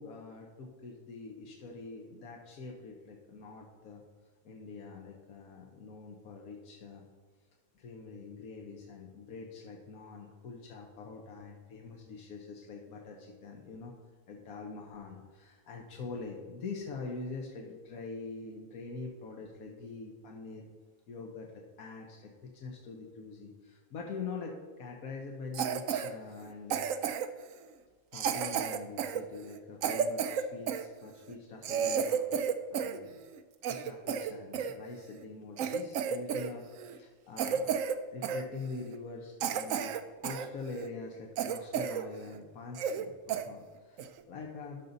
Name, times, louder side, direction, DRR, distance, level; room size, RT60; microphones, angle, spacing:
voice 1, 0.0-4.0 4.4-7.0 7.7-13.9 14.3-20.7 21.1-21.5 21.8-26.8 28.1-33.2 33.7-37.7 38.1-39.9 40.2-44.8, left 4 dB, 90° left, 0 dB, 1.5 m, -44 dB
Cough, 25.5-26.1 26.7-27.4 28.1-30.9 31.3-31.4 31.6-33.0 33.3-34.7 35.2-35.3 35.6-36.5 36.8-37.0 37.4-38.0 38.2-38.4 38.9-39.0 39.4-40.5 40.8-40.9 41.4-42.1 42.4-42.5 42.8-43.0 43.3-43.5 44.0-44.2, right 7 dB, 70° right, 1.0 m, -32 dB
12.0 x 5.4 x 4.0 m, 1.5 s
omnidirectional pair, 1.5 m